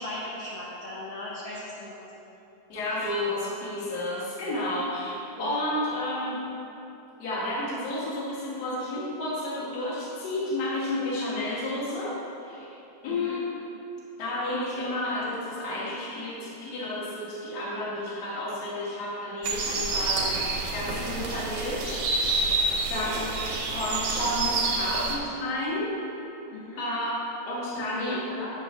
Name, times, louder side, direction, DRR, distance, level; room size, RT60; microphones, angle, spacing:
voice 1, 0.0-2.0 3.0-3.1 5.3-5.5 13.1-13.4 22.6-23.1 26.5-26.9 27.7-28.5, left 1 dB, 65° left, -7 dB, 1.6 m, -38 dB
voice 2, 2.7-6.4 7.2-12.2 12.4-12.8 13.0-13.5 14.2-22.1 22.9-23.3 23.7-25.9 26.8-27.2 27.5-28.2, left 1 dB, 45° left, -6 dB, 1.4 m, -31 dB
sound 1, 19.4-25.2, right 3 dB, 70° right, 2.0 m, -28 dB
8.8 x 3.1 x 6.0 m, 2.9 s
omnidirectional pair, 3.6 m